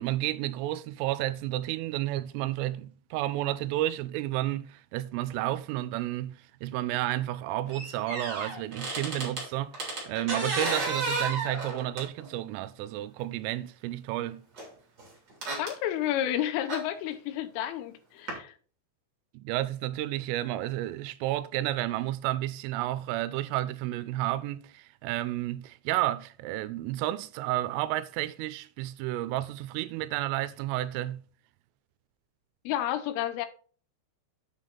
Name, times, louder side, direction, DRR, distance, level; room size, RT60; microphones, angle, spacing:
voice 1, 0.0-14.4 19.3-31.2, right 15 dB, 85° right, 3.1 m, -31 dB
sound 1, 7.7-9.5 9.7-12.3 13.2-13.3 14.6-14.7 15.0-15.7 16.7-16.8 18.3-18.4, right 3 dB, 30° right, 2.4 m, -33 dB
voice 2, 15.6-18.5 32.7-33.5, left 12 dB, 85° left, 3.3 m, -31 dB
8.7 x 6.4 x 4.0 m
omnidirectional pair, 5.8 m